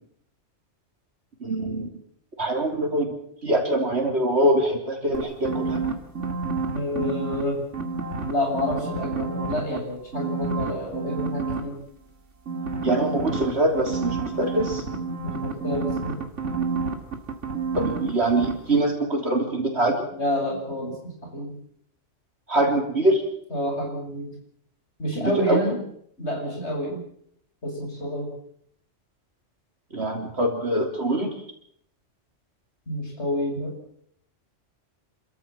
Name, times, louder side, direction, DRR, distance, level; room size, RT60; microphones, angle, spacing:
voice 1, 1.4-1.9 2.4-3.1 3.4-5.8 12.8-14.8 17.7-20.1 22.5-23.2 25.2-25.7 29.9-31.3, right 1 dB, 60° right, 2 dB, 3.6 m, -23 dB
sound 1, 5.1-7.4 7.7-9.8 10.1-11.6 12.5-18.1 18.4-18.5, right 4 dB, 80° right, 2.6 m, -29 dB
voice 2, 6.7-7.6 8.2-11.8 15.2-16.2 20.1-20.9 21.2-21.5 23.5-24.3 25.0-25.8 26.2-27.0 27.6-28.3 32.9-33.7, left 1 dB, 65° left, 1 dB, 7.2 m, -29 dB
27.5 x 14.0 x 7.5 m, 0.68 s
omnidirectional pair, 1.2 m